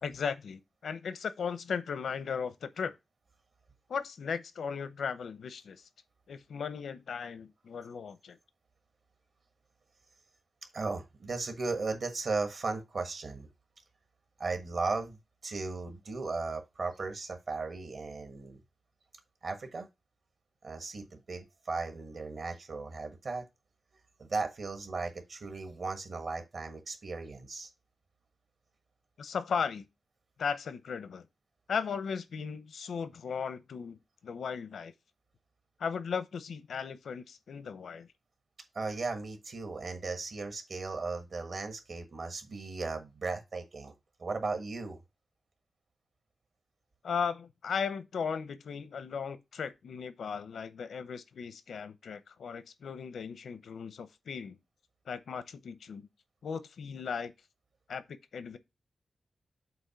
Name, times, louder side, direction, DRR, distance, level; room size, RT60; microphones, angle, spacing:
voice 1, 0.0-2.9 3.9-5.8 6.3-8.4 29.2-29.8 30.4-31.2 31.7-34.0 34.2-34.9 35.8-38.1 47.0-54.6 55.1-56.1 56.4-57.3 57.9-58.6, left 6 dB, 90° left, 0.7 m, -36 dB
voice 2, 10.7-13.5 14.4-18.6 19.4-19.9 20.6-23.4 24.2-27.7 38.7-43.9 44.2-45.0, right 3 dB, 50° right, 1.4 m, -36 dB
7.7 x 2.9 x 5.7 m
wide cardioid pair, 165°, 0 cm